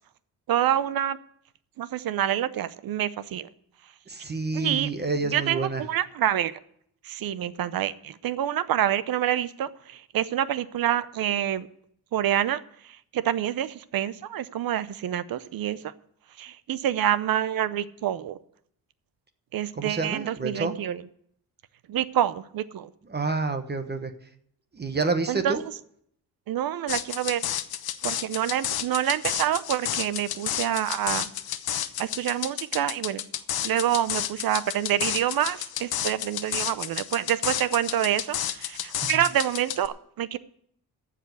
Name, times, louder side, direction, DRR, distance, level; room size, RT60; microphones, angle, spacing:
voice 1, 0.5-1.2 1.8-3.5 4.5-4.9 5.2-6.6 7.0-11.7 12.1-12.6 13.1-15.9 16.4-18.4 19.5-21.0 21.9-22.9 25.3-25.6 26.5-27.5 28.0-31.3 32.0-33.2 33.6-40.4, right 11 dB, 65° right, 16 dB, 0.7 m, -27 dB
voice 2, 4.1-5.8 19.8-20.7 23.1-24.1 24.7-25.6, right 3 dB, 25° right, 8 dB, 1.1 m, -28 dB
sound 1, 26.9-39.9, left 11 dB, 70° left, 0.9 m, -31 dB
14.5 x 5.1 x 9.3 m, 0.69 s
cardioid pair, 100°, 38 cm